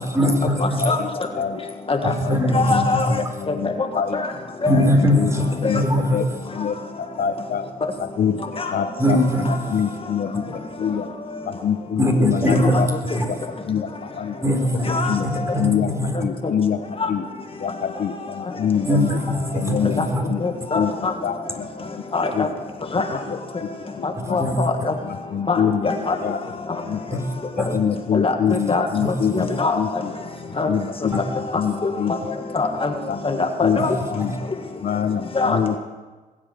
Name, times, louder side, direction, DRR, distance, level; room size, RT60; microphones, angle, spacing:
voice 1, 0.1-0.8 2.0-3.2 4.7-6.2 9.0-9.8 12.0-12.8 13.1-13.3 14.4-15.1 15.5-16.2 18.8-20.2 24.2-24.7 27.1-27.3 27.6-27.7 29.0-29.1 33.8-33.9, equal, 20° right, 3 dB, 4.1 m, -21 dB
voice 2, 0.8-1.6 2.0-4.2 5.0-5.3 5.6-5.8 6.1-6.3 6.5-6.8 7.2-7.6 8.2-8.4 8.7-9.2 9.7-10.4 10.8-11.1 11.5-12.9 13.7-14.6 14.8-15.3 15.6-15.9 16.2-16.8 17.1-17.2 17.6-19.2 19.5-20.4 20.7-21.7 21.9-22.0 22.3-22.5 23.3-23.7 24.3-24.4 25.3-25.9 26.2-26.4 26.8-27.2 27.6-30.1 30.7-31.2 31.6-32.1 33.1-33.2 33.6-33.8 34.1-34.3 34.8-35.7, left 8 dB, 65° left, 8 dB, 1.0 m, -25 dB
voice 3, 2.5-3.1 4.1-4.2 4.6-4.8 5.6-5.7 8.6-8.7 12.5-12.6 14.9-15.1 17.0-17.1 20.4-21.1 22.1-22.5 22.9-23.0 24.3-24.9 25.5-25.6 25.8-26.1 28.1-28.3 28.7-28.9 29.3-29.8 30.6-30.7 31.8-31.9 32.5-32.9 33.2-33.9 35.3-35.6, left 3 dB, 35° left, 4 dB, 1.8 m, -22 dB
21.0 x 8.6 x 7.7 m, 1.3 s
cardioid pair, 70°, 16 cm